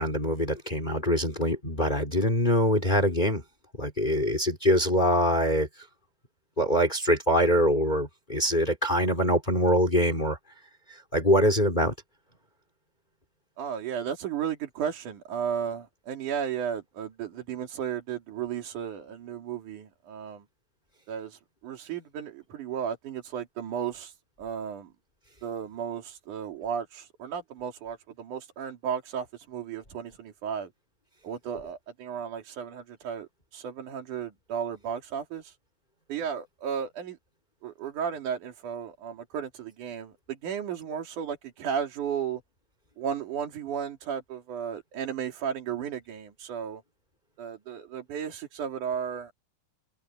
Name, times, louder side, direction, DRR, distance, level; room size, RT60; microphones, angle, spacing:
voice 1, 0.0-3.4 3.8-5.7 6.6-10.4 11.1-11.9, equal, 15° left, 3.9 m, -24 dB
voice 2, 13.6-20.4 21.1-24.9 25.4-30.7 31.2-35.6 36.1-37.2 37.6-42.4 43.0-46.8 47.4-49.3, right 8 dB, 85° right, 4.0 m, -34 dB
omnidirectional pair, 3.4 m